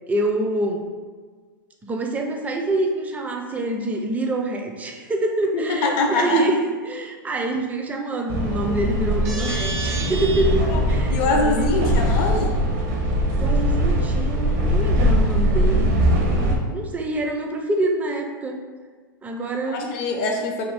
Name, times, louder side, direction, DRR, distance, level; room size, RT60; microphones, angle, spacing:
voice 1, 0.1-0.8 1.8-12.1 13.4-15.9 16.3-18.6 19.2-20.0, right 2 dB, 15° right, 2 dB, 0.4 m, -26 dB
voice 2, 5.5-6.4 10.7-10.8 11.1-12.6 19.7-20.6, left 3 dB, 45° left, 2 dB, 0.5 m, -23 dB
sound 1, 8.3-16.6, equal, 50° right, 0.6 m, -21 dB
2.6 x 2.5 x 3.3 m, 1.5 s
hypercardioid pair, 115°, 11 cm